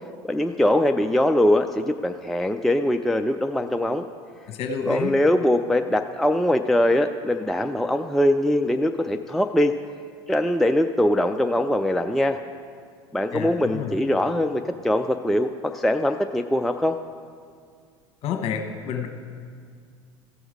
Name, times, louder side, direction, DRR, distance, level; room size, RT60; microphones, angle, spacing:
voice 1, 0.3-4.1 4.9-9.7 10.3-12.4 13.1-17.0, left 1 dB, ahead, 5 dB, 0.3 m, -22 dB
voice 2, 4.5-5.1 13.3-13.9 18.2-19.1, left 7 dB, 45° left, 4 dB, 1.2 m, -29 dB
15.5 x 6.2 x 4.8 m, 2.2 s
figure-of-eight pair, 75°, 14 cm